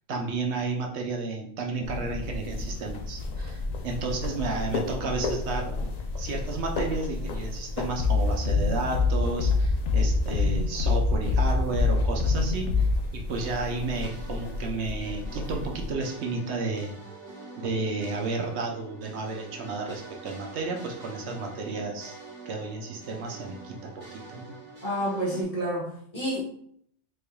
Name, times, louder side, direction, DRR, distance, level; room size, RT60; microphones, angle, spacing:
voice 1, 0.1-5.9 6.1-16.9 17.6-22.1 22.5-24.5, right 3 dB, 75° right, 1 dB, 0.9 m, -32 dB
sound 1, 1.8-15.9, left 3 dB, 60° left, 0.4 m, -33 dB
sound 2, 8.0-13.0, left 4 dB, 80° left, 0.9 m, -24 dB
sound 3, 13.3-25.4, right 3 dB, 35° right, 1.7 m, -46 dB
voice 2, 24.8-26.4, equal, 30° left, -7 dB, 1.3 m, -29 dB
3.9 x 3.4 x 2.2 m, 0.67 s
omnidirectional pair, 1.2 m